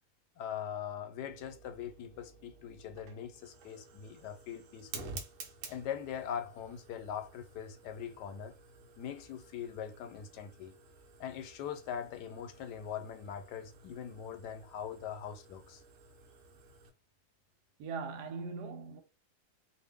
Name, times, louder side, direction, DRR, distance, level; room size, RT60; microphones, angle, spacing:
voice 1, 0.4-5.1 5.7-8.5 9.0-10.7 11.2-15.8, left 8 dB, 85° left, 1.2 m, -42 dB
Fire, 1.2-16.9, right 3 dB, 60° right, 1.0 m, -52 dB
voice 2, 17.8-19.0, right 4 dB, 80° right, 1.3 m, -40 dB
2.5 x 2.5 x 3.5 m
omnidirectional pair, 1.7 m